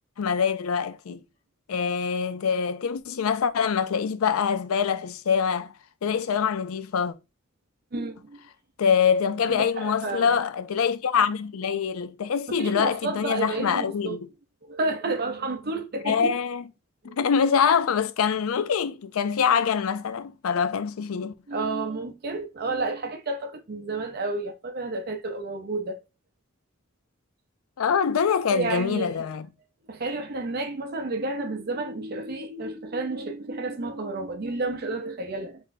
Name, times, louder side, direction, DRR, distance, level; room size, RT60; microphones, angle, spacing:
voice 1, 0.2-1.2 1.7-5.7 6.0-7.1 8.8-14.3 16.0-16.7 17.0-21.3 27.8-29.5, left 6 dB, 80° left, 0.4 m, -24 dB
voice 2, 7.9-8.4 9.4-10.3 12.5-14.2 14.6-16.3 17.1-17.2 21.5-26.0 28.5-29.2 29.9-35.6, right 3 dB, 45° right, 0.6 m, -31 dB
4.1 x 3.4 x 2.7 m
head